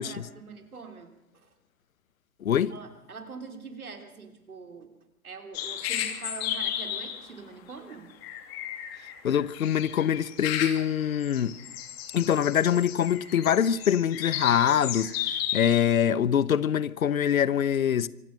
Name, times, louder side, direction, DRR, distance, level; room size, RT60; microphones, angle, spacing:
voice 1, 0.0-1.5 2.7-4.9 5.2-8.1, right 5 dB, 75° right, 3.3 m, -43 dB
voice 2, 2.4-2.7 9.2-11.6 12.1-18.1, left 9 dB, 70° left, 0.9 m, -24 dB
sound 1, 5.5-7.3 7.9-8.0 8.2-15.9, left 10 dB, 45° left, 2.7 m, -34 dB
25.0 x 16.5 x 6.3 m
figure-of-eight pair, 110°, 43 cm